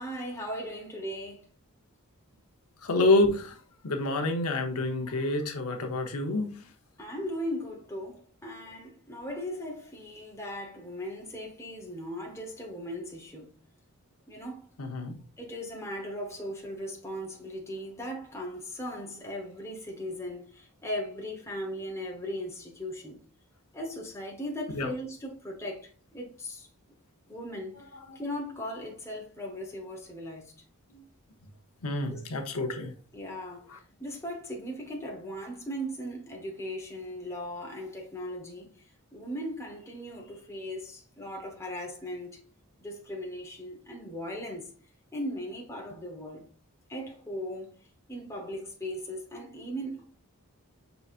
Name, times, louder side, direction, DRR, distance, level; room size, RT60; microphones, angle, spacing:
voice 1, 0.0-1.5 7.0-13.5 14.3-14.6 15.4-23.2 23.7-26.7 27.3-27.8 28.1-30.5 32.0-32.2 33.1-38.7 39.1-42.4 42.8-44.7 45.1-46.4 46.9-47.7 48.1-50.0, equal, 15° left, 0.9 m, -38 dB
voice 2, 2.8-3.5 3.8-6.6 14.8-15.2 24.7-24.9 28.1-28.2 30.9-31.0 31.8-32.9 33.7-33.8, left 2 dB, 85° left, 0.8 m, -28 dB
5.5 x 4.0 x 2.4 m
head